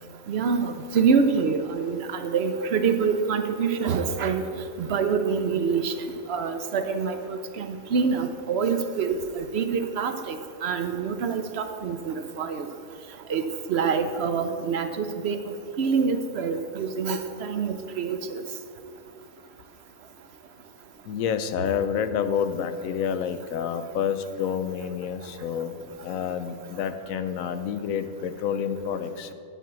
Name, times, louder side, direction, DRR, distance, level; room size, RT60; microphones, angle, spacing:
voice 1, 0.3-4.4 4.8-5.9 6.3-12.7 13.3-15.4 15.8-18.4, right 5 dB, 60° right, 8 dB, 0.8 m, -26 dB
voice 2, 21.1-25.8 26.0-29.3, left 8 dB, 90° left, 10 dB, 1.0 m, -28 dB
10.5 x 4.4 x 7.4 m, 2.4 s
omnidirectional pair, 1.4 m